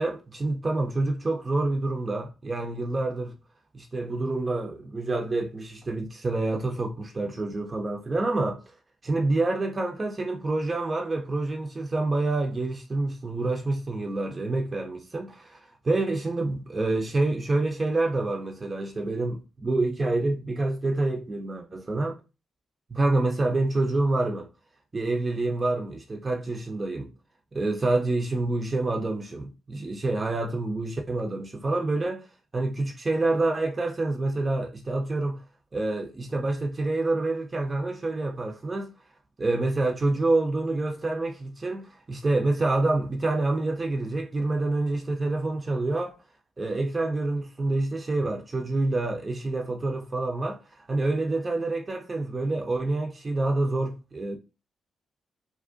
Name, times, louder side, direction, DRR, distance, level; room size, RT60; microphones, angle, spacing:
voice 1, 0.0-3.3 3.7-8.6 9.0-22.2 22.9-24.5 24.9-27.1 27.5-32.3 32.5-35.4 35.7-38.9 39.4-46.1 46.6-54.4, right 2 dB, 35° right, 0.4 m, -27 dB
2.4 x 2.1 x 2.5 m
hypercardioid pair, 45°, 0 cm